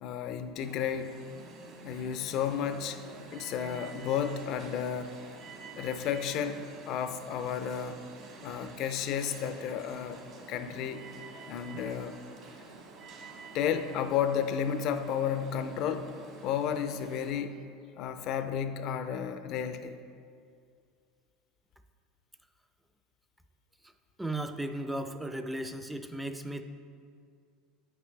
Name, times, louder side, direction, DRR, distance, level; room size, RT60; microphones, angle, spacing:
voice 1, 0.0-1.2 1.8-3.0 3.3-5.2 5.8-8.0 8.4-10.2 10.5-11.0 11.5-12.2 13.5-16.1 16.4-17.6 18.0-20.0, left 8 dB, 55° left, 10 dB, 0.5 m, -32 dB
Alarm, 0.6-17.3, right 3 dB, 50° right, 1.4 m, -49 dB
voice 2, 24.2-26.6, right 1 dB, 5° right, 8 dB, 0.5 m, -35 dB
9.0 x 5.9 x 3.2 m, 2.3 s
supercardioid pair, 100°, 0 cm